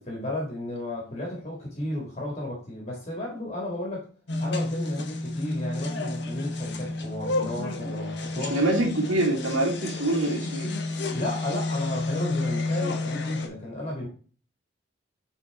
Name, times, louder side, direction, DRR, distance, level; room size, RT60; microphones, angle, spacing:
voice 1, 0.1-4.1 4.4-8.6 11.1-14.1, left 1 dB, 35° left, -2 dB, 2.0 m, -33 dB
sound 1, 4.3-13.5, left 2 dB, 55° left, 1.1 m, -30 dB
voice 2, 8.4-10.7, right 2 dB, 75° right, -1 dB, 2.0 m, -25 dB
8.3 x 4.2 x 3.6 m, 0.40 s
head